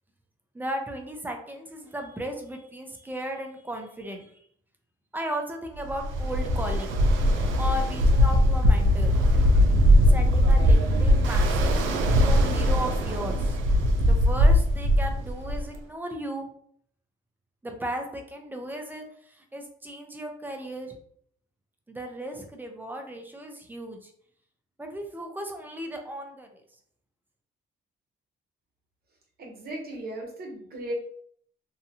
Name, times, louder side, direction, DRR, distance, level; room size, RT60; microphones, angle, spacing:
voice 1, 0.5-4.3 5.1-7.0 7.3-9.2 10.1-13.6 14.0-16.5 17.6-21.0 21.9-24.1 24.8-26.6, equal, 10° right, 3 dB, 0.6 m, -36 dB
Ocean, 5.9-15.8, equal, 80° right, 0.5 m, -21 dB
voice 2, 29.4-30.9, right 1 dB, 50° right, -1 dB, 1.0 m, -36 dB
2.8 x 2.2 x 2.7 m, 0.62 s
cardioid pair, 90°, 20 cm